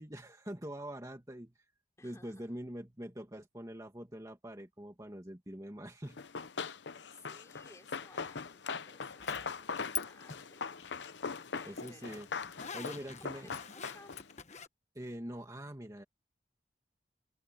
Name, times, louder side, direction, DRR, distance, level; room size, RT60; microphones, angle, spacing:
voice 1, 0.0-1.5 2.0-6.2 11.6-12.3 12.7-13.5 14.9-16.0, equal, 20° right, 2.2 m, -44 dB
voice 2, 2.0-2.7 7.1-11.1 11.5-12.3 12.8-14.2, left 2 dB, 15° left, 4.3 m, -59 dB
Run, 6.2-14.3, left 5 dB, 85° left, 0.8 m, -41 dB
Zipper (clothing), 9.2-10.0 10.3-14.7, left 8 dB, 40° left, 1.4 m, -44 dB
open air
head